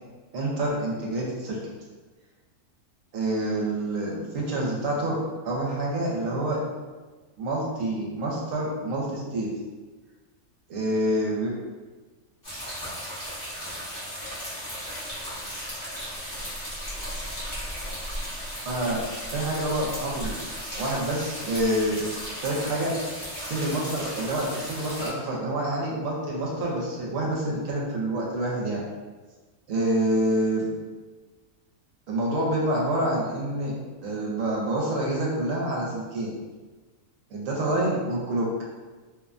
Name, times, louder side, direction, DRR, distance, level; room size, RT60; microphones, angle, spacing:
voice 1, 0.3-1.6 3.1-5.2 5.4-6.6 7.4-9.5 10.7-11.5 18.6-19.0 19.3-22.0 22.4-23.0 23.4-28.8 29.7-30.7 32.1-33.7 34.0-36.3 37.3-38.5, right 1 dB, 70° right, -3 dB, 1.0 m, -27 dB
sound 1, 12.4-25.1, equal, 20° left, 0.6 m, -35 dB
2.7 x 2.1 x 2.4 m, 1.3 s
omnidirectional pair, 1.5 m